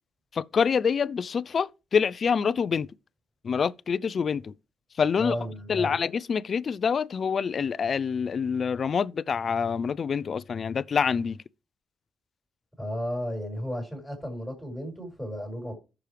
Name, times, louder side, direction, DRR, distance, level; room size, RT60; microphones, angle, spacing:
voice 1, 0.3-2.9 3.4-4.5 5.0-5.4 5.7-11.4, left 6 dB, 45° left, 0.4 m, -26 dB
voice 2, 5.2-6.0 12.8-15.7, equal, ahead, 4.6 m, -34 dB
14.0 x 6.0 x 3.4 m
cardioid pair, 90°, 0 cm